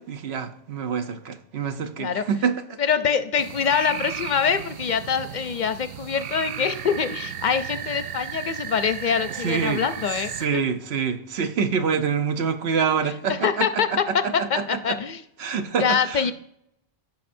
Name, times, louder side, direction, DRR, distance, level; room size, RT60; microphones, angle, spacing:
voice 1, 0.0-2.6 9.4-9.8 10.4-15.0 15.4-16.3, right 6 dB, 90° right, 8 dB, 1.1 m, -26 dB
voice 2, 2.8-10.3 13.0-15.2 15.8-16.3, left 6 dB, 55° left, 11 dB, 0.6 m, -24 dB
sound 1, 3.4-10.5, right 9 dB, 70° right, 0.8 m, -35 dB
15.5 x 5.8 x 2.6 m, 0.76 s
omnidirectional pair, 1.0 m